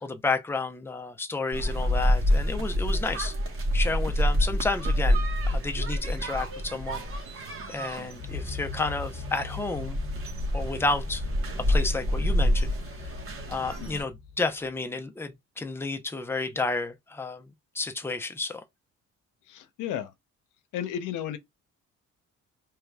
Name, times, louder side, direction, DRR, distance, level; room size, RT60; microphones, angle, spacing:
voice 1, 0.0-3.3 3.7-7.0 7.7-10.0 10.5-11.2 11.7-12.7 13.5-18.6, left 3 dB, 10° left, 0.6 m, -31 dB
sound 1, 1.5-14.0, equal, 45° right, 1.1 m, -27 dB
sound 2, 8.2-14.7, left 4 dB, 50° left, 0.8 m, -40 dB
voice 2, 19.5-20.1 20.7-21.4, left 10 dB, 90° left, 0.7 m, -33 dB
4.7 x 3.2 x 2.3 m
cardioid pair, 90°, 30 cm